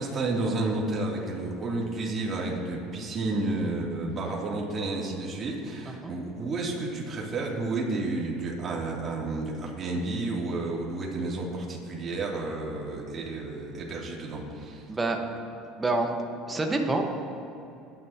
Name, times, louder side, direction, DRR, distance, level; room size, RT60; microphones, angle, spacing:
voice 1, 0.0-14.9, right 2 dB, 35° right, -3 dB, 3.3 m, -31 dB
voice 2, 15.8-16.1 16.5-17.0, right 2 dB, 15° right, 2 dB, 1.6 m, -27 dB
21.0 x 10.5 x 3.1 m, 2.7 s
supercardioid pair, 105°, 0 cm